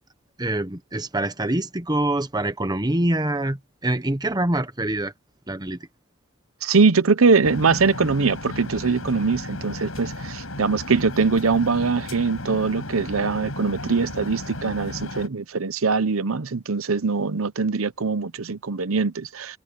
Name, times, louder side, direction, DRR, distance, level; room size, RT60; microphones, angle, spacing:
voice 1, 0.4-5.1 5.5-5.8, right 1 dB, 20° right, 1.2 m, -25 dB
voice 2, 6.6-19.6, right 4 dB, 85° right, 0.8 m, -22 dB
sound 1, 7.4-15.3, left 1 dB, 80° left, 7.3 m, -34 dB
head